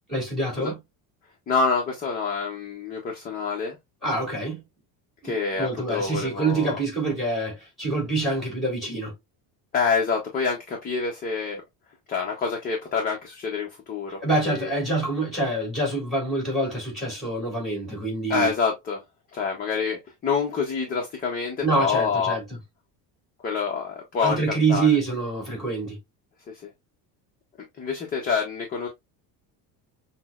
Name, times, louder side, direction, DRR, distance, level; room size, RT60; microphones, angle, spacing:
voice 1, 0.1-0.8 4.0-4.6 5.2-9.1 14.2-18.5 21.6-22.4 24.2-26.0, right 3 dB, ahead, 1.8 m, -26 dB
voice 2, 1.5-3.8 5.2-6.8 9.7-11.6 12.1-14.7 18.3-19.0 19.3-22.4 23.4-24.4 24.7-24.9 26.5-26.7 27.8-28.9, left 5 dB, 20° left, 0.5 m, -27 dB
5.9 x 2.0 x 2.2 m
cardioid pair, 175°, 43 cm